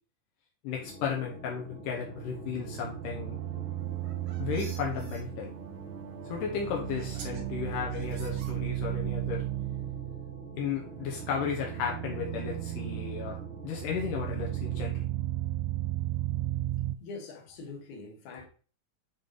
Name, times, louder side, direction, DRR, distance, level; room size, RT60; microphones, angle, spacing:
voice 1, 0.6-3.4 4.4-5.5 6.3-9.4 10.6-13.4 13.6-15.1, left 7 dB, 80° left, 2.5 m, -34 dB
sound 1, 0.8-14.8, equal, 30° left, 1.1 m, -47 dB
sound 2, 1.7-17.0, right 15 dB, 85° right, 2.1 m, -35 dB
sound 3, 3.9-5.2 6.4-6.5 7.0-7.4 7.9-9.0, right 5 dB, 65° right, 2.4 m, -49 dB
voice 2, 17.0-18.5, left 3 dB, 65° left, 2.7 m, -43 dB
7.2 x 3.6 x 3.8 m
omnidirectional pair, 3.7 m